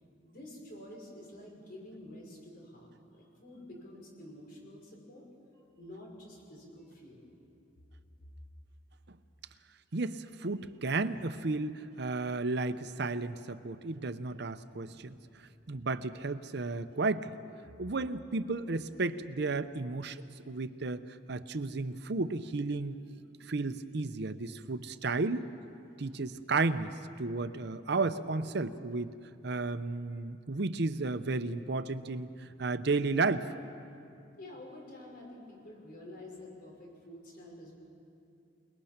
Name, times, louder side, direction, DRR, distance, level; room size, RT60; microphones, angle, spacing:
voice 1, 0.2-5.3 5.5-7.4 34.4-37.8, left 1 dB, 50° left, -1 dB, 5.7 m, -49 dB
voice 2, 9.9-17.4 17.8-21.0 21.3-23.0 23.4-25.5 26.0-29.1 29.4-33.5, right 3 dB, 60° right, 12 dB, 0.8 m, -33 dB
28.5 x 20.0 x 5.9 m, 2.7 s
head